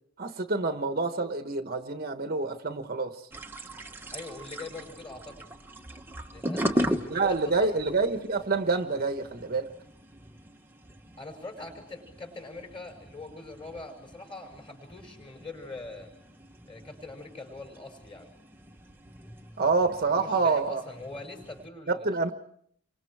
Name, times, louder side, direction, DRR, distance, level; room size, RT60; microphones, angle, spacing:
voice 1, 0.2-3.2 7.1-9.7 19.6-20.8 21.9-22.3, right 3 dB, 45° right, 7 dB, 1.2 m, -27 dB
sound 1, 3.3-21.7, equal, 10° right, 1.1 m, -39 dB
voice 2, 4.1-5.5 6.3-7.8 11.2-16.1 16.7-18.3 20.1-22.1, left 3 dB, 25° left, 4 dB, 5.5 m, -43 dB
29.0 x 24.5 x 4.8 m, 0.67 s
head